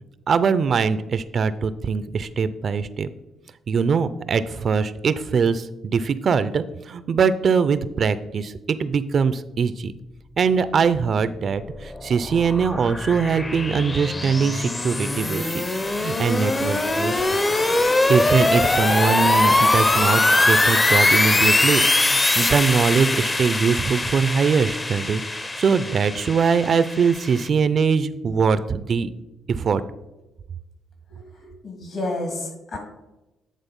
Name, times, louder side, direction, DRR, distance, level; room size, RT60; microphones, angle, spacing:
voice 1, 0.3-3.1 3.7-8.5 8.8-9.9 10.4-17.1 18.1-29.1 29.5-29.8, right 5 dB, 50° right, 15 dB, 0.4 m, -22 dB
sound 1, 11.4-27.5, left 2 dB, 25° left, 0.6 m, -22 dB
voice 2, 31.4-32.8, left 2 dB, 65° left, 1 dB, 2.7 m, -30 dB
9.2 x 3.7 x 5.2 m, 0.99 s
cardioid pair, 90°, 0 cm